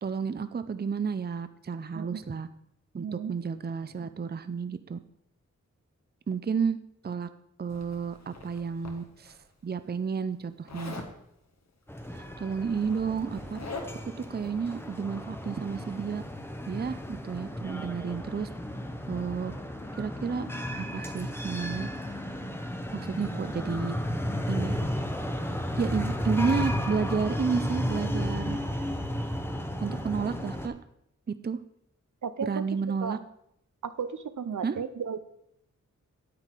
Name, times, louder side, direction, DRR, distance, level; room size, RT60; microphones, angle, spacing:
voice 1, 0.0-2.5 2.9-5.0 6.3-6.8 7.0-7.3 7.6-9.4 9.6-11.0 12.2-13.6 14.0-16.2 16.7-18.5 19.1-19.5 20.0-20.5 20.7-21.9 22.9-23.9 24.5-24.8 25.8-28.6 29.8-30.8 31.4-31.6 32.4-33.2 34.6-34.8, right 5 dB, 35° right, 11 dB, 0.5 m, -31 dB
Zipper (clothing), 7.7-9.3 10.7-11.1 12.3-12.4 12.7-14.2, left 3 dB, 60° left, 1.6 m, -42 dB
sound 1, 11.9-30.7, left 1 dB, 10° left, 0.9 m, -33 dB
voice 2, 32.2-33.2 33.8-35.2, right 6 dB, 80° right, 11 dB, 0.7 m, -35 dB
9.7 x 8.8 x 4.6 m, 0.74 s
wide cardioid pair, 100°, 30 cm